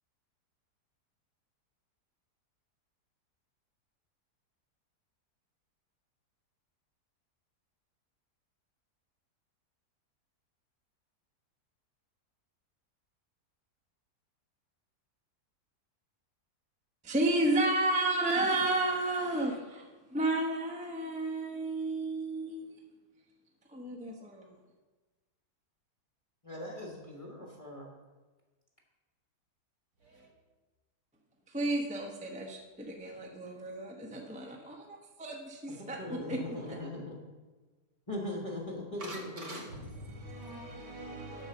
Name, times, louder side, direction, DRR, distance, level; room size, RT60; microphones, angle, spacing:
voice 1, 17.0-19.8 20.1-22.8 23.7-24.5 31.5-36.8, right 2 dB, 5° right, 0.8 m, -32 dB
voice 2, 26.4-27.9 35.7-37.2 38.1-39.7, left 1 dB, 20° left, 1.2 m, -40 dB
voice 3, 39.0-41.5, right 1 dB, 65° right, 2.5 m, -44 dB
8.1 x 6.0 x 6.8 m
omnidirectional pair, 1.7 m